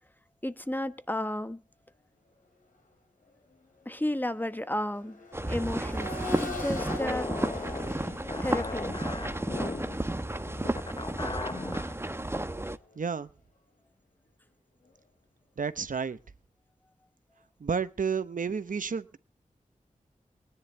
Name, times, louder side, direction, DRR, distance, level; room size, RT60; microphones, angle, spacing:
voice 1, 0.4-1.6 3.8-7.3 8.4-8.9, left 1 dB, 15° left, 1.1 m, -33 dB
Accelerating revving vroom, 2.6-2.8 3.2-13.1 14.8-14.9, left 3 dB, 75° left, 3.0 m, -45 dB
sound 1, 5.3-12.8, right 1 dB, 20° right, 1.0 m, -33 dB
sound 2, 6.8-11.9, left 3 dB, 35° left, 0.7 m, -37 dB
voice 2, 13.0-13.3 15.6-16.2 17.6-19.2, right 6 dB, 75° right, 1.0 m, -31 dB
20.0 x 10.5 x 3.3 m
cardioid pair, 45°, 14 cm